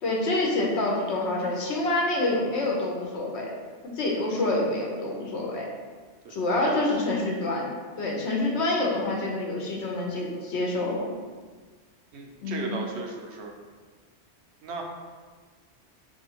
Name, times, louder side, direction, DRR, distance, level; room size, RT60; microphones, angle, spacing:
voice 1, 0.0-3.5 4.0-5.7 6.3-7.7 8.0-11.1 12.4-12.7, left 2 dB, 80° left, -2 dB, 1.0 m, -27 dB
voice 2, 12.1-13.5 14.6-14.8, right 4 dB, 80° right, 1 dB, 0.9 m, -36 dB
5.0 x 2.7 x 2.8 m, 1.5 s
omnidirectional pair, 1.1 m